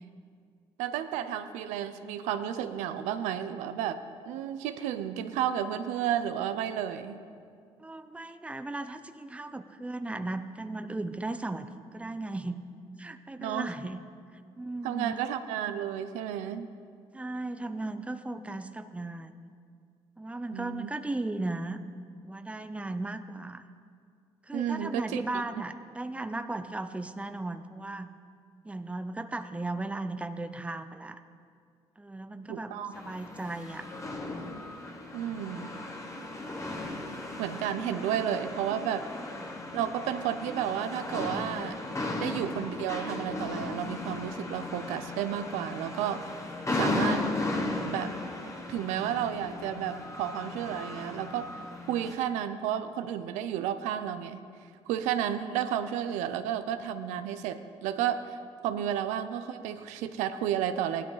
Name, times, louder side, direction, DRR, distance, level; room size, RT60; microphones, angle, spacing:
voice 1, 0.8-4.0 4.3-7.2 13.4-13.7 14.8-16.7 20.5-20.9 24.5-25.4 32.5-32.9 35.1-35.7 37.4-39.0 39.7-41.8 42.2-46.2 46.7-47.2 47.9-48.1 48.7-51.6 51.9-54.4 54.9-58.4 58.6-61.1, right 10 dB, 90° right, 10 dB, 0.6 m, -32 dB
voice 2, 7.8-12.6 13.0-14.0 14.3-15.1 17.1-19.5 20.2-21.8 22.2-23.6 24.4-28.1 28.6-31.2 32.0-33.9 39.1-39.7 58.7-58.8, right 2 dB, 10° right, 9 dB, 0.7 m, -36 dB
sound 1, 32.9-52.1, left 2 dB, 25° left, 1.8 m, -36 dB
16.5 x 11.5 x 4.0 m, 2.2 s
supercardioid pair, 75°, 12 cm